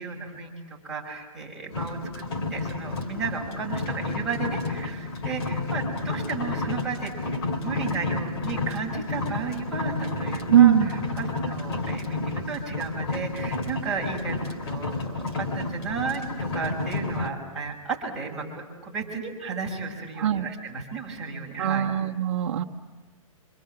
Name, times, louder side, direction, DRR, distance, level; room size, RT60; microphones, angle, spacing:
voice 1, 0.0-2.2 2.5-7.1 7.5-16.2 16.5-21.9, right 4 dB, 5° right, -6 dB, 5.8 m, -34 dB
sound 1, 1.7-17.3, left 3 dB, 45° left, 3.4 m, -31 dB
voice 2, 10.5-10.9 20.2-20.5 21.6-22.6, right 10 dB, 55° right, 1 dB, 1.3 m, -20 dB
28.0 x 26.5 x 7.8 m, 1.2 s
hypercardioid pair, 160°, 18 cm